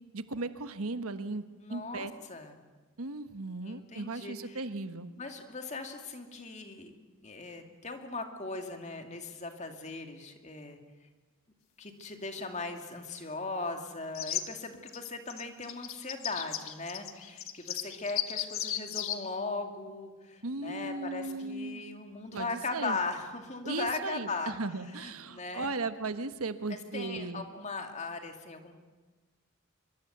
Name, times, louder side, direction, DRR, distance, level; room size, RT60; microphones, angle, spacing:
voice 1, 0.1-1.4 1.7-2.1 3.0-5.1 20.4-21.8 22.3-23.0 23.6-27.4, right 3 dB, 85° right, 11 dB, 1.3 m, -36 dB
voice 2, 1.6-2.6 3.6-4.6 5.2-6.9 7.2-10.8 11.8-24.5 25.0-25.7 26.7-28.7, left 3 dB, 30° left, 5 dB, 2.4 m, -38 dB
sound 1, 14.1-14.4 14.9-19.2, left 11 dB, 70° left, 1.6 m, -35 dB
24.5 x 23.0 x 8.0 m, 1.3 s
head